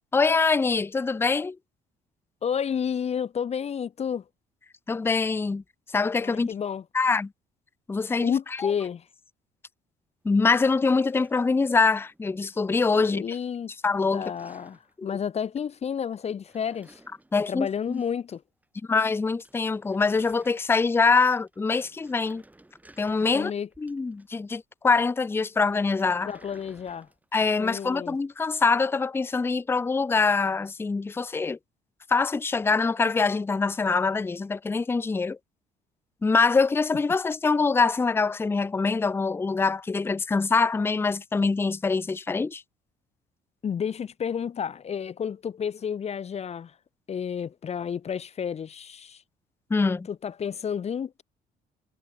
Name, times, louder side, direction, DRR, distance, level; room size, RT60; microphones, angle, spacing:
voice 1, 0.1-1.6 4.9-5.6 5.9-6.5 6.9-7.3 7.9-8.3 8.6-8.7 10.2-13.4 13.8-14.3 15.0-15.1 17.3-18.0 18.9-22.4 23.0-23.5 23.8-26.3 27.3-31.6 32.1-35.4 36.2-42.6 49.7-50.1, left 4 dB, 15° left, 0.5 m, -24 dB
voice 2, 2.4-4.2 6.2-6.8 8.2-9.0 13.0-13.7 14.1-17.0 17.5-18.4 23.3-23.7 26.2-27.1 27.6-28.1 43.6-46.7 47.1-49.2 50.1-51.2, left 7 dB, 40° left, 1.4 m, -31 dB
sound 1, 10.5-12.6 12.9-13.5 13.7-14.9 16.2-18.4 18.6-18.7 19.0-19.1 19.3-21.0 21.4-24.5 25.6-27.6, right 2 dB, 10° right, 4.2 m, -57 dB
cardioid pair, 110°, 17 cm